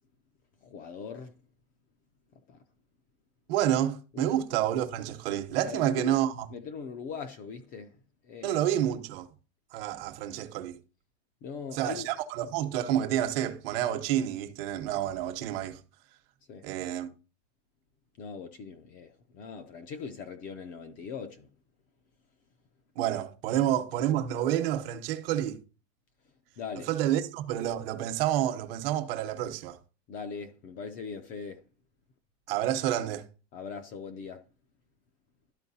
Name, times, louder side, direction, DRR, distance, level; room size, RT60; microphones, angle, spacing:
voice 1, 0.6-1.3 2.5-2.6 4.1-4.3 5.6-6.2 6.5-8.0 8.2-8.6 11.4-12.1 16.5-16.6 18.2-21.5 23.7-23.8 26.6-26.9 30.1-31.6 33.5-34.4, left 6 dB, 25° left, 0.5 m, -40 dB
voice 2, 3.5-6.5 8.4-9.3 9.7-10.8 11.7-15.8 16.6-17.1 23.0-25.6 26.8-29.8 32.5-33.2, right 11 dB, 55° right, 1.0 m, -29 dB
12.5 x 4.5 x 2.7 m
supercardioid pair, 165°, 35 cm